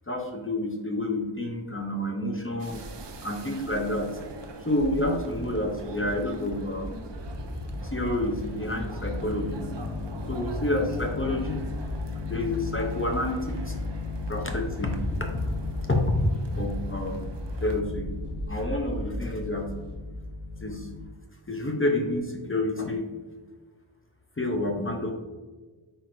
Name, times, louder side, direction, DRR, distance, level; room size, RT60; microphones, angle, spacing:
voice 1, 0.1-2.8 3.2-4.1 4.6-6.9 7.8-9.7 10.3-11.6 12.3-13.7 14.3-15.3 15.9-17.3 17.6-18.1 18.5-19.7 20.6-20.9 21.5-23.0 24.4-25.1, left 1 dB, 25° left, 2 dB, 0.6 m, -29 dB
sound 1, 2.6-17.8, right 2 dB, 60° right, 0.6 m, -43 dB
sound 2, 5.0-20.0, equal, 85° right, 1.3 m, -38 dB
sound 3, 8.9-21.1, left 4 dB, 60° left, 1.1 m, -36 dB
4.6 x 4.2 x 2.5 m, 1.3 s
wide cardioid pair, 55°, 49 cm